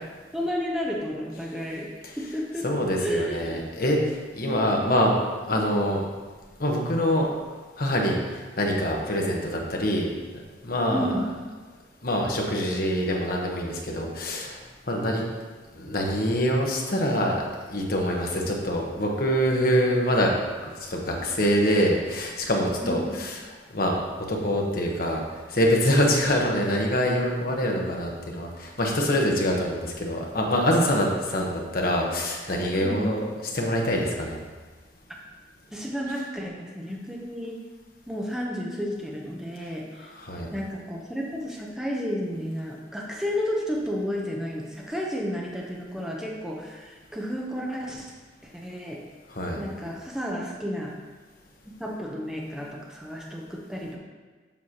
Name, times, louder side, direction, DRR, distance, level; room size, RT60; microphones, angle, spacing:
voice 1, 0.3-1.9 2.2-2.7 3.0-3.6 4.4-5.1 10.9-11.3 22.8-23.2 32.8-33.1 35.1-35.2 35.7-37.6 38.1-40.1 40.5-48.1 48.4-49.0 49.6-51.0 51.8-54.0, equal, 5° right, -2 dB, 0.7 m, -32 dB
voice 2, 2.6-5.1 5.5-6.0 6.6-7.3 7.8-10.1 10.6-11.1 12.0-14.6 14.9-15.2 15.8-17.4 17.7-20.3 20.7-23.4 23.7-25.2 25.5-33.3 33.5-34.4 40.2-40.5 49.3-49.6, equal, 50° left, 0 dB, 1.0 m, -25 dB
7.3 x 6.1 x 2.9 m, 1.4 s
head